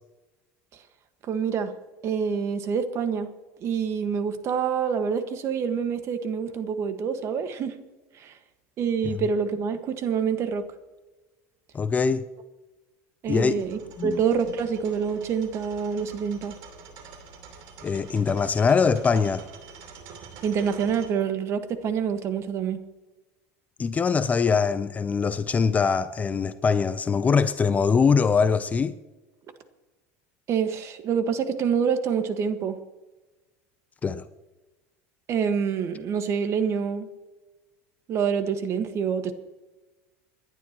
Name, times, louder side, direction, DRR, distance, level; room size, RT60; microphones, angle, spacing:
voice 1, 1.2-1.7 2.0-3.3 3.6-7.7 8.2-8.4 8.8-10.6 13.2-16.5 20.4-22.8 30.5-32.8 35.3-37.1 38.1-39.3, right 6 dB, 40° right, 1.5 m, -26 dB
voice 2, 11.7-12.3 13.3-13.6 14.0-14.2 17.8-19.5 23.8-29.0 34.0-34.3, left 5 dB, 20° left, 0.5 m, -23 dB
sound 1, 13.3-21.1, right 5 dB, 60° right, 2.9 m, -46 dB
29.0 x 11.0 x 3.0 m
supercardioid pair, 125°, 7 cm